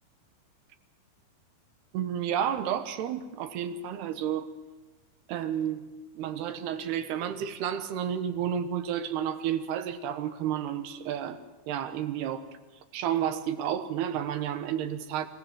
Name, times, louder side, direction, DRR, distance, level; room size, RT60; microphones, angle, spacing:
voice 1, 1.9-4.5 5.3-5.8 6.2-11.4 11.7-12.5 12.9-15.3, right 9 dB, 70° right, 10 dB, 2.9 m, -31 dB
26.0 x 18.5 x 7.6 m, 1.2 s
omnidirectional pair, 5.6 m